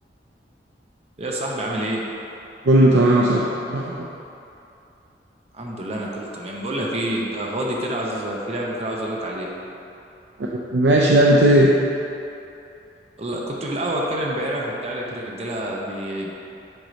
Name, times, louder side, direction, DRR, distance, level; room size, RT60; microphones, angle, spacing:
voice 1, 1.2-2.0 5.5-9.5 13.2-16.3, right 1 dB, 35° right, -2 dB, 0.7 m, -27 dB
voice 2, 2.6-4.1 10.4-11.7, right 1 dB, 70° right, -3 dB, 0.5 m, -16 dB
7.8 x 3.0 x 5.1 m, 2.8 s
head